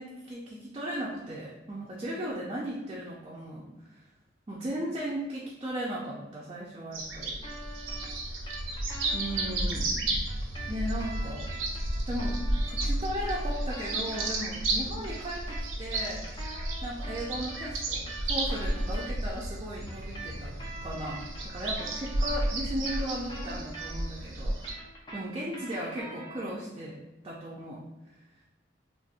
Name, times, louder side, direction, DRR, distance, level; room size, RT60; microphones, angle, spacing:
voice 1, 0.0-4.1 4.5-7.4 9.1-10.2 10.6-11.5 12.1-16.3 16.8-24.6 25.1-27.0 27.2-27.8, equal, 30° right, -5 dB, 0.4 m, -36 dB
sound 1, 6.9-24.7, right 1 dB, 85° right, 0.5 m, -32 dB
sound 2, 7.4-9.5 10.3-14.6 14.9-19.1 19.9-24.2 24.5-26.6, right 2 dB, 25° left, 0.5 m, -44 dB
4.0 x 2.0 x 2.5 m, 1.0 s
head